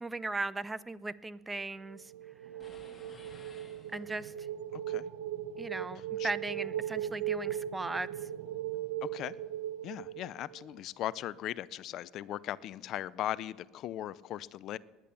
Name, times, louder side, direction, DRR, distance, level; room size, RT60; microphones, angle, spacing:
voice 1, 0.0-2.1 3.9-4.5 5.6-8.1, right 2 dB, 15° right, 18 dB, 0.6 m, -37 dB
sound 1, 1.9-10.8, right 11 dB, 80° right, 0.9 m, -38 dB
sound 2, 2.6-4.4, left 3 dB, 20° left, 3.4 m, -56 dB
voice 2, 4.7-5.0 6.2-6.3 9.0-9.3 9.8-14.8, left 13 dB, 55° left, 19 dB, 0.5 m, -38 dB
19.0 x 10.5 x 7.0 m, 1.2 s
supercardioid pair, 100°, 0 cm